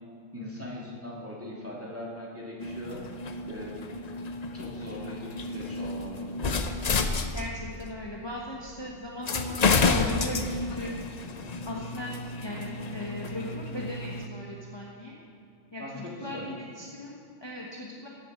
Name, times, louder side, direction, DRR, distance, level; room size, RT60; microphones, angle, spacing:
voice 1, 0.3-3.0 3.5-3.8 4.5-6.3 15.8-16.4, left 1 dB, 10° right, -5 dB, 2.6 m, -40 dB
sound 1, 2.6-7.8 8.7-8.8 9.2-14.3, left 4 dB, 40° left, 0.7 m, -30 dB
voice 2, 7.3-10.9 11.6-15.2 15.7-18.1, left 2 dB, 20° left, -3 dB, 1.2 m, -38 dB
15.5 x 7.1 x 6.4 m, 2.6 s
omnidirectional pair, 1.2 m